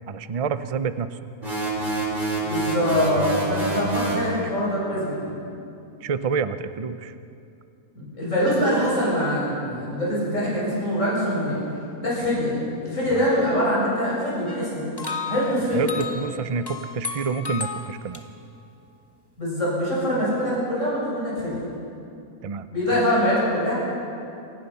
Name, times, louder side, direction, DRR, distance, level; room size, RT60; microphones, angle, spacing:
voice 1, 0.1-1.2 6.0-7.1 13.1-13.3 15.7-18.2 22.4-22.7 22.9-23.0, right 5 dB, 60° right, 12 dB, 0.3 m, -28 dB
sound 1, 1.4-4.3, right 2 dB, 30° right, 4.3 m, -27 dB
voice 2, 2.4-5.4 7.9-11.6 12.0-14.9 15.3-15.9 19.4-21.7 22.7-23.7, equal, 50° left, -7 dB, 7.8 m, -24 dB
sound 2, 14.5-18.2, left 4 dB, 15° left, 1.5 m, -34 dB
29.0 x 17.0 x 5.6 m, 2.6 s
omnidirectional pair, 1.6 m